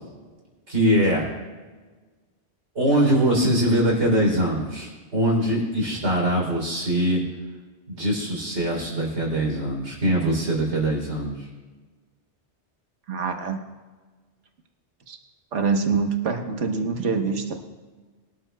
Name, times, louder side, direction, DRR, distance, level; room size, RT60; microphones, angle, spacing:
voice 1, 0.7-1.3 2.8-7.2 7.9-11.4, right 1 dB, 70° right, -2 dB, 3.7 m, -22 dB
voice 2, 13.1-13.6 15.1-15.2 15.5-17.5, right 5 dB, 85° right, 4 dB, 1.5 m, -25 dB
22.5 x 12.5 x 2.3 m, 1.4 s
omnidirectional pair, 1.2 m